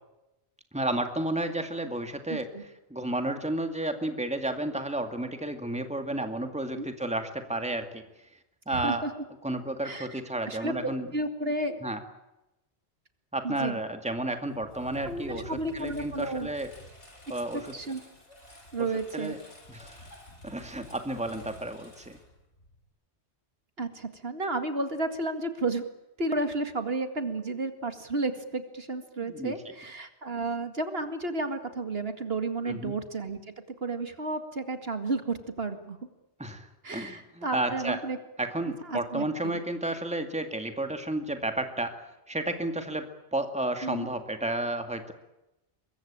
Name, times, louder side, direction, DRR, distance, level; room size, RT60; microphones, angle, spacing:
voice 1, 0.7-2.5 2.9-8.0 8.7-9.1 9.4-11.1 11.8-12.0 13.3-16.7 17.3-17.7 19.1-19.4 19.7-20.0 20.4-22.2 29.2-29.5 32.6-33.0 36.4-38.0 38.4-42.0 42.3-45.1, right 1 dB, 5° right, 7 dB, 2.2 m, -32 dB
voice 2, 2.3-2.6 6.8-6.9 8.7-9.1 9.8-11.8 13.4-13.8 15.0-16.5 17.5-18.0 18.7-19.3 23.8-25.8 26.2-33.4 33.8-36.0 36.8-38.2 38.8-39.6 43.8-44.1, right 2 dB, 60° right, 8 dB, 2.3 m, -32 dB
Engine, 14.1-22.9, left 1 dB, 90° left, 7.6 m, -49 dB
24.0 x 22.5 x 8.9 m, 0.93 s
omnidirectional pair, 1.2 m